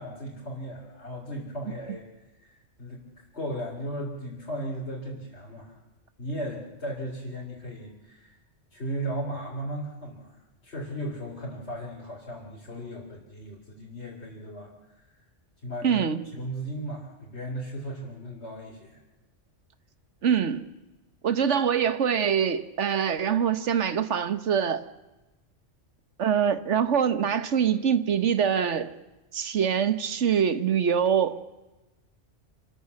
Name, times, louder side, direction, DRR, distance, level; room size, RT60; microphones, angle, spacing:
voice 1, 0.0-2.1 2.4-5.8 6.2-8.4 8.7-10.4 10.6-14.7 15.0-15.1 15.6-16.0 16.3-19.0, right 1 dB, 60° left, -4 dB, 3.7 m, -36 dB
voice 2, 15.8-16.2 20.2-20.7 21.2-24.8 26.2-28.9 29.3-31.4, right 7 dB, 75° right, 13 dB, 1.4 m, -24 dB
27.0 x 13.5 x 8.3 m, 1.1 s
omnidirectional pair, 1.2 m